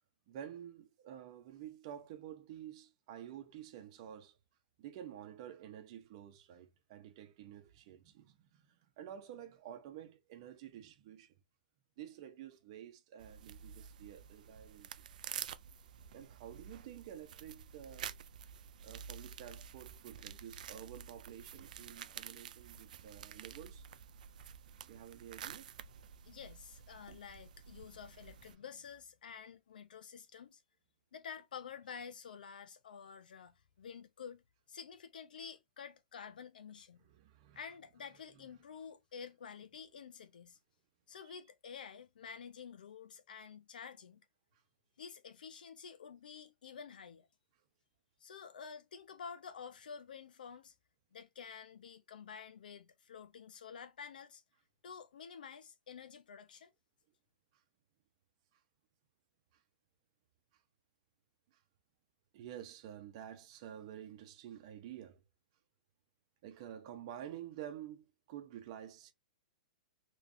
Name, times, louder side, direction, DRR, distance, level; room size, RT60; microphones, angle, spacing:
voice 1, 0.3-4.4 4.8-11.4 12.0-15.1 16.1-18.2 18.8-23.8 24.9-25.6 37.0-37.6 38.3-38.4 41.2-41.4 59.5-59.6 61.5-61.6 62.3-65.2 66.4-69.1, right 10 dB, 40° right, 0.8 m, -50 dB
sound 1, 13.2-28.6, right 8 dB, 65° right, 0.4 m, -50 dB
voice 2, 26.3-30.6 31.1-34.4 34.7-37.0 37.5-40.6 41.1-44.2 45.0-47.3 48.2-50.7 51.1-54.4 54.8-56.7, left 6 dB, 85° left, 0.9 m, -50 dB
3.4 x 3.2 x 2.7 m
hypercardioid pair, 155°, 5 cm